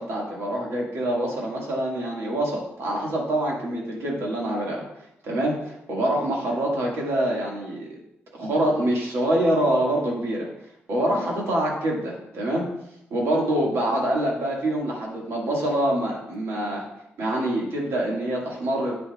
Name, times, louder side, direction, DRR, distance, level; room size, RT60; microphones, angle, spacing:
voice 1, 0.0-4.8 5.2-7.9 8.3-10.5 10.9-12.7 13.1-16.8 17.2-19.0, right 1 dB, 80° right, -2 dB, 1.9 m, -25 dB
8.6 x 5.5 x 2.4 m, 0.81 s
cardioid pair, 80°, 4 cm